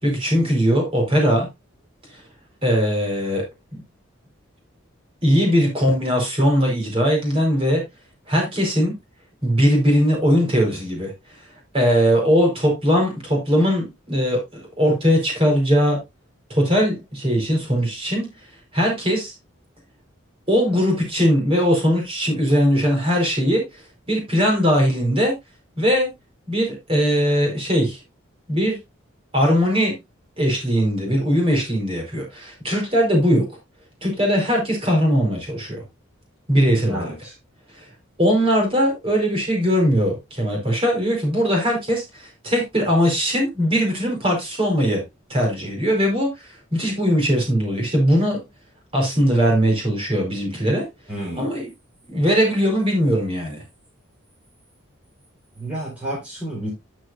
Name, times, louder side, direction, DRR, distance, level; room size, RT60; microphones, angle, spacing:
voice 1, 0.0-1.5 2.1-2.2 2.6-3.4 3.7-3.8 5.2-7.8 8.3-8.9 9.4-11.1 11.7-16.0 16.5-18.3 18.7-19.3 20.5-23.8 24.1-25.3 25.8-26.1 26.5-28.0 28.5-28.8 29.3-29.9 30.4-33.4 34.0-35.8 36.5-37.1 38.2-45.0 45.3-48.5 48.9-50.9 51.4-51.7 52.1-53.6, equal, 25° right, 4.5 m, -20 dB
voice 2, 36.9-37.3 51.1-51.5 55.5-56.7, right 1 dB, 5° right, 4.8 m, -30 dB
12.5 x 6.5 x 2.6 m
head